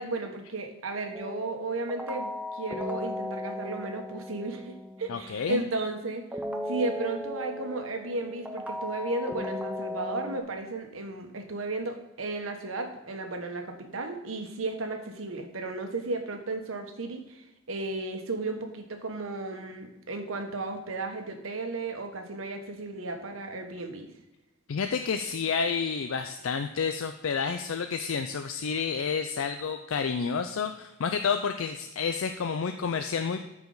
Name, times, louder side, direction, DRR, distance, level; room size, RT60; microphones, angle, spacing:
voice 1, 0.0-6.2 6.6-24.1, right 2 dB, 80° right, 4 dB, 1.2 m, -34 dB
sound 1, 1.1-5.7 6.3-10.4, left 1 dB, 5° right, 0.6 m, -36 dB
voice 2, 5.1-5.6 24.7-33.5, left 6 dB, 75° left, 7 dB, 0.4 m, -30 dB
13.5 x 4.9 x 3.9 m, 0.96 s
head